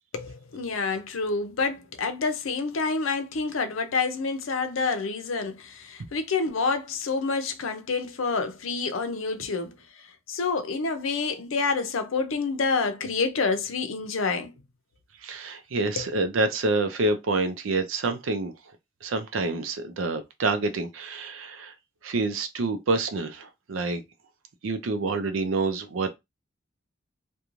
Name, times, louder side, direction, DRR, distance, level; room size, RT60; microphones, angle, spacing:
voice 1, 0.1-9.7 10.3-14.5 16.0-16.1, left 4 dB, 90° left, 0.6 m, -28 dB
voice 2, 15.2-18.5 19.0-21.7 22.0-24.0 24.6-26.2, right 3 dB, 80° right, 0.5 m, -27 dB
3.0 x 2.2 x 2.5 m
head